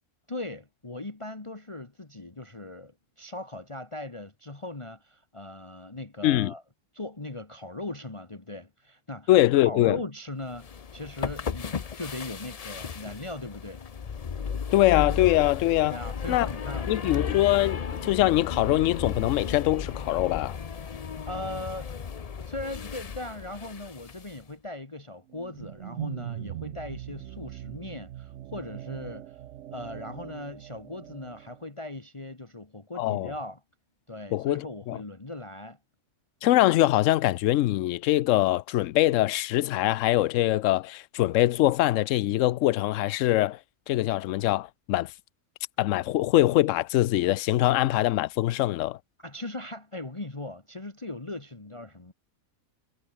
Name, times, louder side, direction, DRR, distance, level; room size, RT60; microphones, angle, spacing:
voice 1, 0.3-6.6 6.9-13.8 15.9-17.3 21.3-21.9 22.4-29.4 29.7-33.6 34.1-35.8 49.2-52.1, left 2 dB, 20° left, 1.7 m, -39 dB
voice 2, 6.2-6.5 9.3-10.0 14.7-16.0 16.3-16.5 16.9-20.6 33.0-33.3 34.3-35.0 36.4-43.6 43.9-45.1 45.8-49.0, left 15 dB, 70° left, 0.8 m, -23 dB
sound 1, 10.5-24.4, left 6 dB, 40° left, 0.5 m, -35 dB
sound 2, 25.3-31.6, right 12 dB, 65° right, 0.8 m, -40 dB
omnidirectional pair, 1.5 m